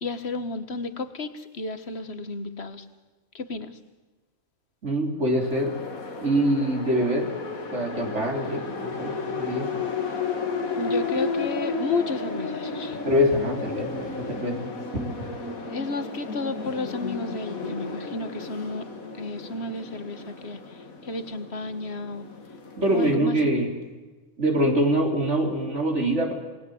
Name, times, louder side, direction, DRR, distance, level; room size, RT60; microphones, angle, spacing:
voice 1, 0.0-2.9 3.3-3.8 10.8-13.0 15.7-18.9 19.2-22.3 22.9-23.4, left 3 dB, 50° left, 11 dB, 1.8 m, -32 dB
voice 2, 4.8-5.7 6.2-7.3 7.7-9.7 13.0-14.6 22.8-23.7 24.4-26.3, equal, 55° right, 2 dB, 4.2 m, -24 dB
sound 1, 5.4-23.2, left 4 dB, 80° left, 2.6 m, -33 dB
27.5 x 20.5 x 8.0 m, 1.2 s
omnidirectional pair, 1.4 m